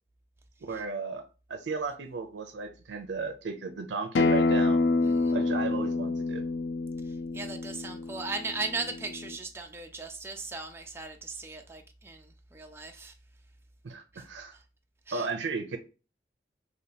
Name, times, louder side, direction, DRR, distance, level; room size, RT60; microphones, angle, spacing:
voice 1, 0.6-1.2 1.5-4.8 5.3-6.4 13.8-14.6 15.1-15.8, right 4 dB, 85° right, 0.5 m, -35 dB
Acoustic guitar, 4.1-9.3, left 3 dB, 80° left, 0.4 m, -28 dB
voice 2, 5.0-5.4 7.3-13.1 14.1-14.2 15.1-15.3, right 3 dB, 15° right, 0.5 m, -38 dB
3.1 x 2.8 x 4.0 m
head